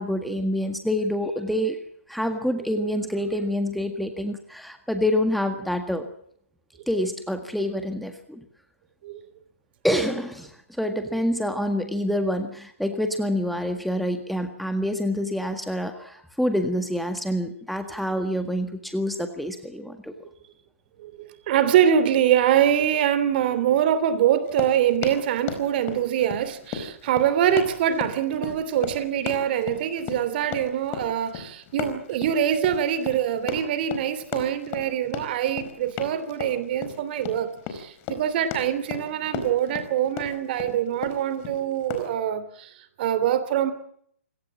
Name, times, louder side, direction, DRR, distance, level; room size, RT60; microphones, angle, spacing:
voice 1, 0.0-1.8 2.1-6.1 6.9-8.4 9.8-20.1 28.4-28.5, equal, ahead, 6 dB, 1.8 m, -27 dB
voice 2, 21.0-42.7 43.0-43.7, right 10 dB, 45° right, 14 dB, 3.1 m, -24 dB
Run, 24.4-42.1, left 7 dB, 30° left, 4.6 m, -35 dB
28.0 x 17.5 x 7.4 m, 0.66 s
hypercardioid pair, 135°, 8 cm